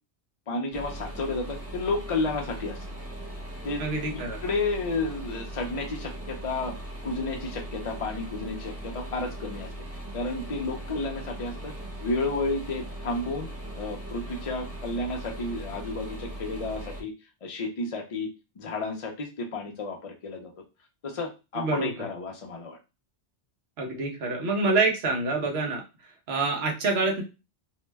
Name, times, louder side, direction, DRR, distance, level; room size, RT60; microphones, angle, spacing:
voice 1, 0.5-3.0 3.6-3.8 4.4-6.8 7.0-9.7 10.1-11.7 12.0-13.5 13.7-17.1 17.4-18.3 18.6-20.5 21.0-22.8, left 3 dB, 45° left, 1 dB, 0.5 m, -31 dB
sound 1, 0.7-17.0, right 1 dB, 15° right, 0.6 m, -39 dB
voice 2, 3.8-4.4 21.6-21.9 23.8-25.8 26.3-27.2, right 3 dB, 70° right, 2 dB, 1.0 m, -26 dB
2.7 x 2.1 x 3.2 m, 0.28 s
omnidirectional pair, 1.1 m